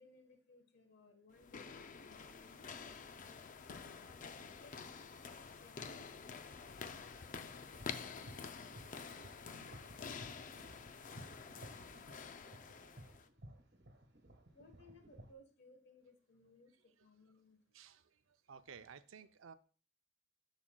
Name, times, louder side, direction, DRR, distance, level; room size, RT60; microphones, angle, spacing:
voice 1, 0.0-4.0 4.5-6.2 14.5-17.8, left 2 dB, 60° left, 5 dB, 1.2 m, -64 dB
sound 1, 1.3-13.3, left 5 dB, 45° left, 0.5 m, -49 dB
sound 2, 7.3-15.3, right 1 dB, 60° right, 1.4 m, -57 dB
voice 2, 17.7-19.5, right 6 dB, 90° right, 11 dB, 0.5 m, -55 dB
11.0 x 6.1 x 2.2 m, 0.40 s
head